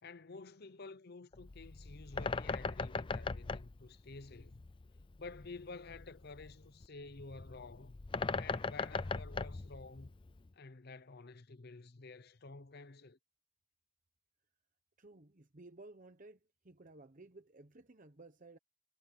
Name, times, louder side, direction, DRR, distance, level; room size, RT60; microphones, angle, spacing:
voice 1, 0.0-4.6 5.2-8.0 8.3-10.1 10.5-13.2, left 3 dB, 50° left, 0.8 m, -51 dB
Bird, 1.3-10.5, left 4 dB, 25° left, 0.4 m, -40 dB
voice 2, 15.0-18.6, right 2 dB, 40° right, 1.0 m, -56 dB
head